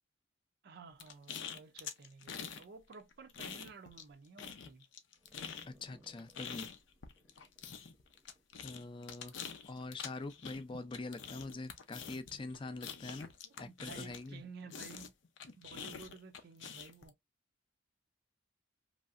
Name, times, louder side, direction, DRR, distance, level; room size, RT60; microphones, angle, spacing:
voice 1, 0.6-4.9 13.4-15.1 15.6-17.1, right 4 dB, 55° right, 0.4 m, -53 dB
sound 1, 1.0-2.6 2.9-4.1 4.4-14.4 14.7-17.1, left 7 dB, 75° left, 0.6 m, -46 dB
sound 2, 5.2-9.8, equal, 10° right, 0.7 m, -67 dB
voice 2, 5.7-6.7 8.6-9.3 9.7-13.3 13.6-14.4, left 3 dB, 25° left, 0.4 m, -44 dB
3.1 x 2.6 x 2.4 m
head